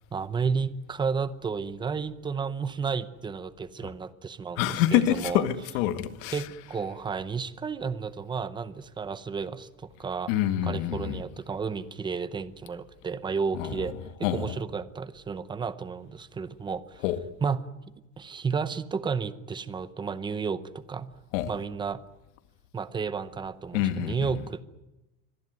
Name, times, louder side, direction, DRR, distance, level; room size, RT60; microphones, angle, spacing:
voice 1, 0.1-5.4 6.3-10.3 10.6-13.9 14.2-17.0 17.4-17.6 18.2-21.1 21.5-22.0 22.7-24.6, right 5 dB, 10° right, 0.7 m, -32 dB
voice 2, 4.6-6.5 10.3-11.2 13.5-13.9 14.2-14.5 17.0-17.2 21.3-21.5 23.7-24.1, left 12 dB, 90° left, 1.9 m, -26 dB
25.0 x 18.5 x 9.4 m
cardioid pair, 175°, 37 cm